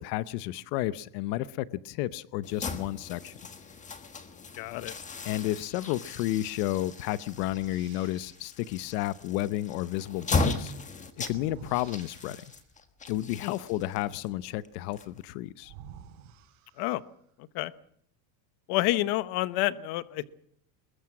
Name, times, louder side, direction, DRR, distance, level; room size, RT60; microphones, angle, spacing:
voice 1, 0.0-3.3 5.2-10.7 11.3-12.4 13.1-15.7, left 15 dB, 90° left, 0.9 m, -32 dB
sound 1, 2.4-15.5, left 3 dB, 15° left, 1.5 m, -37 dB
voice 2, 4.6-5.0 13.4-13.5 16.8-17.0 17.4-17.7 18.7-20.2, left 17 dB, 55° left, 1.1 m, -29 dB
sound 2, 7.3-8.5 11.2-12.8 15.1-15.2 15.6-17.2, right 9 dB, 75° right, 7.2 m, -51 dB
22.5 x 21.5 x 6.1 m
cardioid pair, 170°, 46 cm